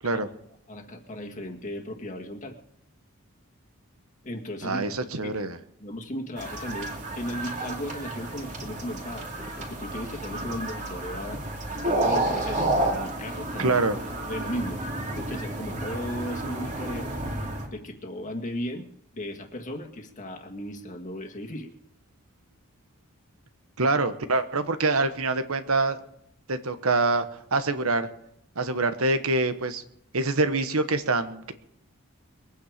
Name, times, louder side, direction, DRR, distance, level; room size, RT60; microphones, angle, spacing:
voice 1, 0.7-2.6 4.2-5.4 5.8-11.4 11.7-13.8 14.3-14.8 15.1-17.1 17.6-18.9 19.1-21.7, left 1 dB, 35° left, 2 dB, 1.9 m, -36 dB
voice 2, 4.6-5.6 13.6-14.0 23.8-26.0 26.5-27.2 27.5-28.1 28.5-29.8 30.1-31.5, right 3 dB, 75° right, 10 dB, 1.2 m, -25 dB
sound 1, 6.4-17.7, right 2 dB, 35° right, 2.7 m, -31 dB
22.5 x 9.4 x 5.1 m, 0.71 s
head